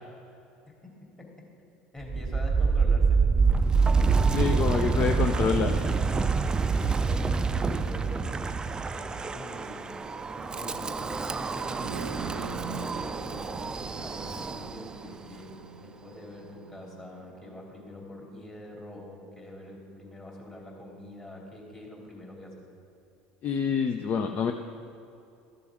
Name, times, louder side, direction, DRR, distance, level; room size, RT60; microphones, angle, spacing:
voice 1, 1.9-3.5 4.3-6.3 6.7-8.2 8.9-10.0 10.3-13.6 14.0-22.5, left 1 dB, 20° left, -1 dB, 2.7 m, -44 dB
Wind, 2.0-15.0, right 5 dB, 20° right, 0.4 m, -27 dB
voice 2, 4.3-5.7 23.4-24.5, left 6 dB, 40° left, 6 dB, 0.5 m, -27 dB
sound 1, 11.6-19.4, right 6 dB, 80° right, 0.4 m, -45 dB
12.5 x 6.9 x 4.9 m, 2.6 s
hypercardioid pair, 75°, 4 cm